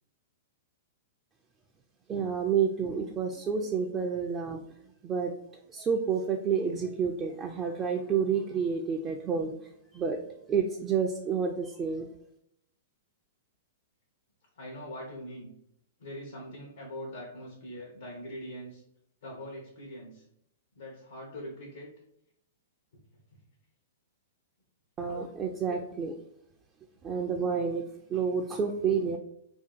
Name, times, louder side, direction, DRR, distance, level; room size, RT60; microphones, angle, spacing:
voice 1, 2.1-4.6 5.0-5.3 5.7-9.5 9.9-10.2 10.5-12.1 25.0-26.1 27.0-27.8 28.1-29.2, right 6 dB, 25° right, 2 dB, 0.3 m, -29 dB
voice 2, 14.6-15.5 16.0-18.8 19.2-20.2 20.8-21.9 23.3-23.4, equal, 75° left, -3 dB, 0.8 m, -42 dB
2.7 x 2.3 x 4.0 m, 0.75 s
hypercardioid pair, 120°, 0 cm